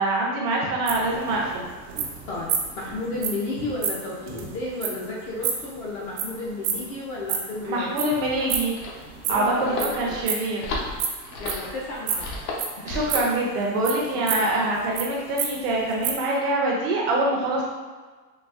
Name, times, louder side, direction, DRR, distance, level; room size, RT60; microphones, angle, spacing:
voice 1, 0.0-1.7 7.6-8.8 9.3-10.6 12.8-17.6, right 2 dB, 40° right, -2 dB, 0.5 m, -25 dB
sound 1, 0.9-7.6 7.9-9.9 10.2-11.7 12.1-13.4 13.8-15.0 15.4-15.5 15.7-16.1, right 7 dB, 75° right, 0.8 m, -29 dB
voice 2, 2.3-7.9 9.3-10.1 11.4-12.4 12.8-12.9 14.1-14.7, left 2 dB, 35° left, -4 dB, 0.4 m, -32 dB
sound 2, 8.3-13.3, left 2 dB, 75° left, 0.9 m, -34 dB
4.0 x 2.7 x 2.4 m, 1.4 s
supercardioid pair, 155°, 50 cm